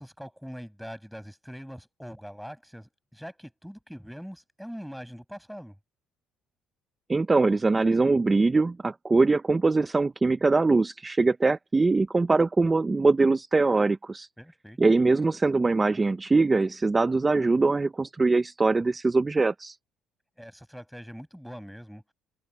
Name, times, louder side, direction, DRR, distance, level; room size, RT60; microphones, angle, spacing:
voice 1, 0.0-5.8 14.4-14.8 20.4-22.0, equal, ahead, 5.6 m, -42 dB
voice 2, 7.1-14.3 14.8-19.8, right 3 dB, 20° right, 0.5 m, -22 dB
cardioid pair, 120°, 0 cm